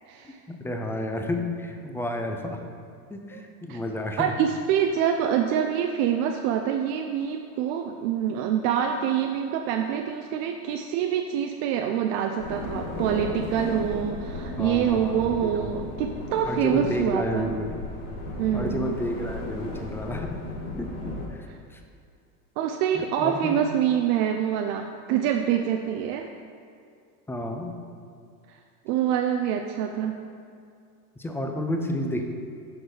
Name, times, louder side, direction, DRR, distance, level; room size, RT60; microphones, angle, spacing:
voice 1, 0.2-2.6 3.1-4.3 14.6-15.8 16.5-17.8 18.5-20.4 20.8-21.5 21.7-21.8 22.9-23.6 27.3-27.8 31.2-32.2, left 1 dB, 5° left, 4 dB, 0.4 m, -31 dB
voice 2, 4.2-17.5 18.4-19.0 22.6-26.3 28.5-28.6 28.9-30.2, right 9 dB, 60° right, 4 dB, 0.5 m, -26 dB
sound 1, 12.4-21.3, left 2 dB, 85° left, 1.6 m, -35 dB
6.5 x 4.8 x 4.7 m, 2.3 s
supercardioid pair, 100°, 45 cm